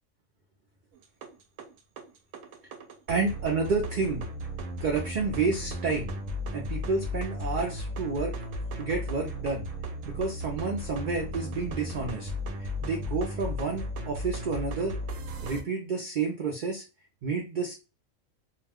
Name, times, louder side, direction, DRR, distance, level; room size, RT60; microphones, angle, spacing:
sound 1, 0.9-15.6, left 1 dB, 75° right, 1.0 m, -35 dB
voice 1, 3.1-4.3 4.8-6.2 6.5-8.3 8.8-9.7 10.1-12.3 12.6-15.0 15.4-16.8 17.2-17.7, right 4 dB, 55° right, 1 dB, 0.5 m, -30 dB
2.4 x 2.2 x 3.4 m, 0.29 s
omnidirectional pair, 1.4 m